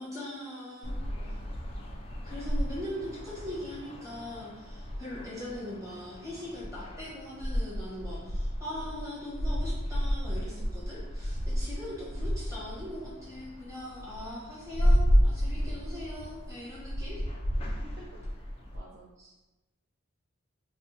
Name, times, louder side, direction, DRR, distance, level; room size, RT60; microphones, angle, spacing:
voice 1, 0.0-1.7 2.2-17.2 19.2-19.3, left 1 dB, 15° right, -9 dB, 1.2 m, -41 dB
sound 1, 0.8-18.8, equal, 30° left, 0.3 m, -32 dB
voice 2, 1.1-1.5 17.6-18.0 18.3-18.4 18.7-19.1, right 1 dB, 45° right, -8 dB, 0.6 m, -52 dB
3.5 x 2.1 x 2.8 m, 1.1 s
head